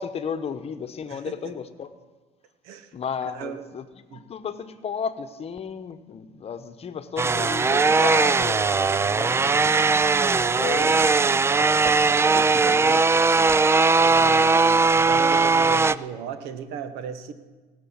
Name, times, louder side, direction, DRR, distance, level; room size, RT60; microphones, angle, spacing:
voice 1, 0.0-1.9 2.9-3.8 4.1-9.9 10.3-11.1 11.5-13.0, left 6 dB, 35° left, 10 dB, 1.0 m, -34 dB
voice 2, 3.2-3.6 4.1-4.2 9.3-10.1 10.4-11.0 14.0-17.3, right 7 dB, 75° right, 10 dB, 1.3 m, -36 dB
sound 1, 7.2-16.0, right 4 dB, 15° right, 0.3 m, -19 dB
18.5 x 6.8 x 7.1 m, 1.3 s
supercardioid pair, 100°, 17 cm